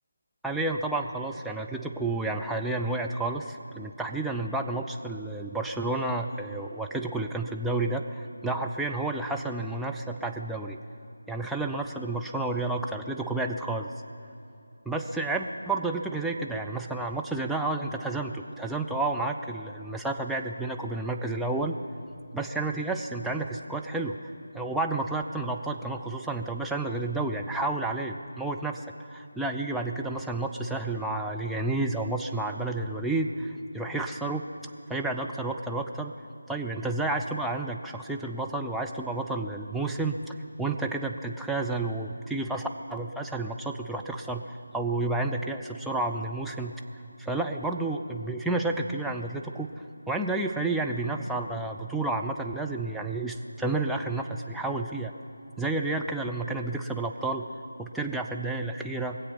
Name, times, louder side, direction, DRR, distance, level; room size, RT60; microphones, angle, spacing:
voice 1, 0.4-10.8 11.3-13.9 14.9-21.8 22.3-24.2 24.5-28.9 29.1-34.4 34.9-36.1 36.5-44.4 44.7-46.7 47.2-49.7 50.1-55.1 55.6-57.5 57.8-59.2, right 2 dB, ahead, 0 dB, 0.4 m, -30 dB
22.0 x 7.9 x 5.8 m, 2.7 s
figure-of-eight pair, 160°, 0 cm